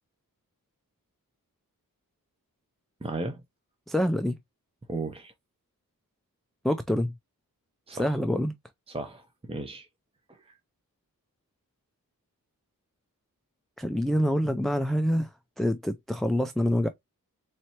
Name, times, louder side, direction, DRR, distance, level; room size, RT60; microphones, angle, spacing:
voice 1, 3.0-3.4 4.9-5.3 7.9-8.2 8.9-9.9 10.3-10.6, right 2 dB, 15° right, 0.8 m, -35 dB
voice 2, 3.9-4.4 6.6-7.1 8.0-8.5 13.8-15.3 15.6-16.9, equal, ahead, 0.3 m, -26 dB
4.4 x 3.2 x 2.8 m
wide cardioid pair, 100°, 35 cm